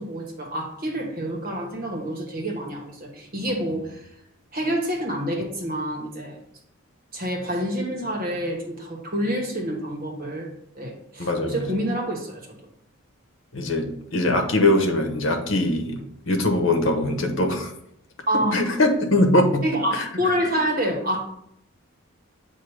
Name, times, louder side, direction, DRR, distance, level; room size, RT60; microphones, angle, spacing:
voice 1, 0.0-4.0 4.5-6.4 7.1-10.5 10.8-12.4 18.3-18.6 19.6-21.3, equal, 45° right, 0 dB, 1.4 m, -27 dB
voice 2, 11.2-11.6 13.5-17.7 18.5-19.6 19.9-20.1, left 1 dB, 70° left, 4 dB, 1.0 m, -22 dB
7.7 x 2.7 x 4.9 m, 0.74 s
head